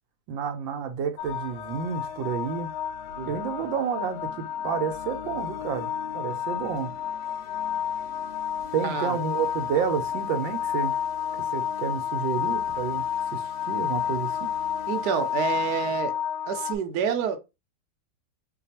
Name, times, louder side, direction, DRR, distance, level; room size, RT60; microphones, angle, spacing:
voice 1, 0.3-2.7 3.3-7.0 8.7-11.0 11.3-14.5, right 7 dB, 85° right, 1.4 m, -30 dB
sound 1, 1.2-16.8, left 9 dB, 85° left, 1.4 m, -31 dB
sound 2, 1.2-16.0, left 2 dB, 55° left, 1.2 m, -49 dB
voice 2, 8.8-9.2 14.9-16.1 16.5-17.4, right 7 dB, 70° right, 1.1 m, -28 dB
3.3 x 2.3 x 4.1 m
omnidirectional pair, 2.1 m